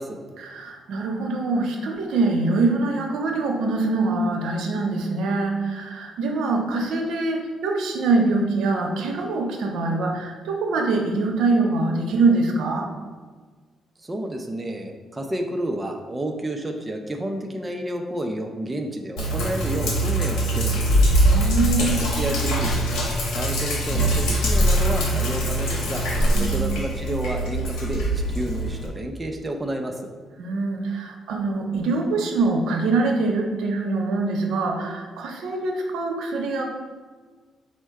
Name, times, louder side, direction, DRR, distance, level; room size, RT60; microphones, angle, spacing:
voice 1, 0.4-12.9 21.3-22.0 26.3-26.6 30.4-36.6, right 3 dB, 85° right, 1 dB, 0.6 m, -24 dB
voice 2, 14.0-21.1 21.8-22.9 23.3-30.1, right 1 dB, 20° right, 3 dB, 0.4 m, -30 dB
Sink (filling or washing), 19.2-28.9, right 1 dB, 85° left, 0.8 m, -22 dB
4.4 x 2.1 x 4.6 m, 1.5 s
cardioid pair, 100°, 0 cm